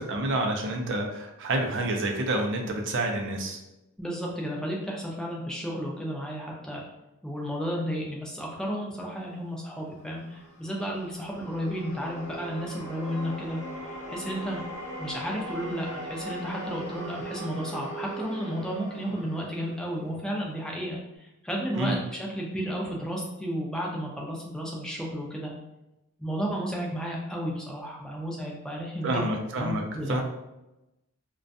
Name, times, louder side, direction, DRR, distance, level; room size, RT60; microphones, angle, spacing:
voice 1, 0.0-3.6 21.8-22.0 29.0-30.2, right 1 dB, 55° right, 2 dB, 0.4 m, -28 dB
voice 2, 4.0-6.8 7.2-13.6 13.9-14.6 15.0-25.5 26.2-29.3 29.6-30.2, equal, 5° left, -3 dB, 0.4 m, -33 dB
sound 1, 9.9-20.3, right 1 dB, 70° left, 0.7 m, -40 dB
2.4 x 2.2 x 2.6 m, 0.95 s
head